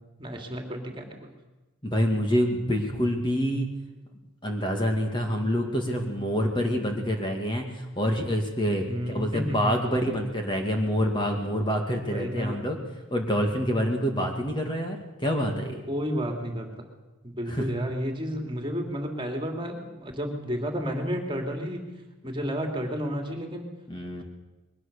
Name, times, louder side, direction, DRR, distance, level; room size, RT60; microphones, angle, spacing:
voice 1, 0.2-1.4 8.9-9.9 12.1-12.6 15.9-16.9 17.2-21.9 22.2-23.7, equal, 25° right, 3 dB, 2.7 m, -31 dB
voice 2, 1.8-3.7 4.4-12.8 13.1-15.8 17.5-17.6 23.9-24.2, equal, 20° left, 2 dB, 2.2 m, -27 dB
22.0 x 19.0 x 6.8 m, 1.1 s
head